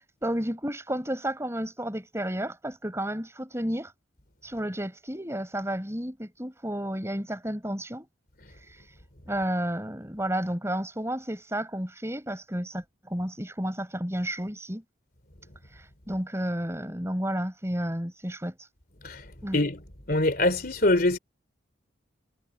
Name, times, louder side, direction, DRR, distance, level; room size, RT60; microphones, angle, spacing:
voice 1, 0.0-3.9 4.4-8.1 8.5-9.0 9.3-14.8 15.6-18.7 19.4-19.6, right 1 dB, 15° right, 4.7 m, -32 dB
voice 2, 20.1-21.2, left 2 dB, 50° left, 3.4 m, -23 dB
head